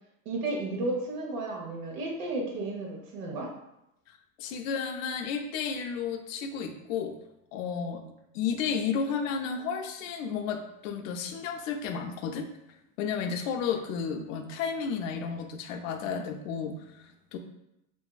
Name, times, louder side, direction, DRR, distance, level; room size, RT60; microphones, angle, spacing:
voice 1, 0.2-3.5, right 2 dB, 80° right, -1 dB, 0.9 m, -33 dB
voice 2, 4.1-7.2 7.5-8.0 8.3-12.5 13.0-17.4, left 6 dB, 75° left, 5 dB, 0.5 m, -32 dB
2.6 x 2.3 x 2.3 m, 0.86 s
supercardioid pair, 110°, 39 cm